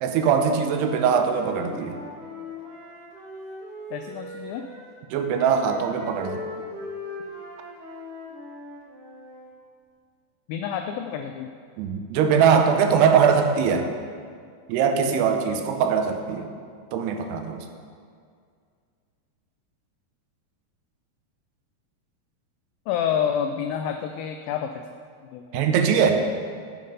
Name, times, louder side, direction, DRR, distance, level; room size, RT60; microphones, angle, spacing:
voice 1, 0.0-2.0 5.1-6.4 11.8-13.9 14.7-16.5 16.9-17.7 25.5-26.3, right 6 dB, 85° right, 6 dB, 2.8 m, -21 dB
Wind instrument woodwind instrument, 1.1-4.8 5.1-9.5, left 1 dB, 45° right, 2.2 m, -40 dB
voice 2, 3.9-4.7 10.5-11.5 22.9-24.9 25.3-25.7, left 8 dB, 90° left, 6 dB, 2.0 m, -28 dB
9.3 x 7.9 x 5.4 m, 2.2 s
omnidirectional pair, 4.7 m